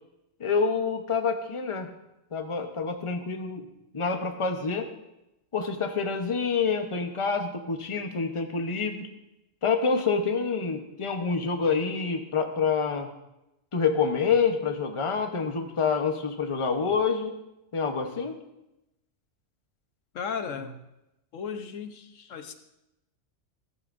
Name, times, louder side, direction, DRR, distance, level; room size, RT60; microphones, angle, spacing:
voice 1, 0.4-1.9 2.3-3.7 3.9-4.9 5.5-9.1 9.6-13.1 13.7-17.3 17.7-18.4, left 5 dB, 25° left, 5 dB, 0.9 m, -27 dB
voice 2, 20.1-20.8 21.3-22.5, left 6 dB, 80° left, 7 dB, 1.2 m, -35 dB
14.5 x 14.0 x 2.6 m, 0.90 s
omnidirectional pair, 1.3 m